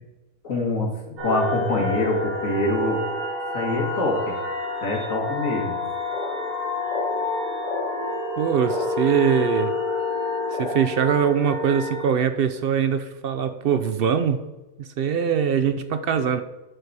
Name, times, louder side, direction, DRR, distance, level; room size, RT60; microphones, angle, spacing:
voice 1, 0.4-3.0 3.5-4.3 4.8-5.8, left 2 dB, 80° left, 0 dB, 2.2 m, -25 dB
sound 1, 1.2-12.1, left 2 dB, 80° right, 2.7 m, -28 dB
sound 2, 5.3-5.4 6.1-6.3 6.9-7.1 7.6-7.9 8.7-8.9 9.7-9.8 10.5-11.0 11.6-11.8, left 2 dB, 55° left, 3.1 m, -32 dB
voice 2, 8.4-9.7 10.5-14.4 14.8-16.4, right 7 dB, 65° right, 10 dB, 0.6 m, -22 dB
11.0 x 4.2 x 4.7 m, 1.1 s
omnidirectional pair, 1.4 m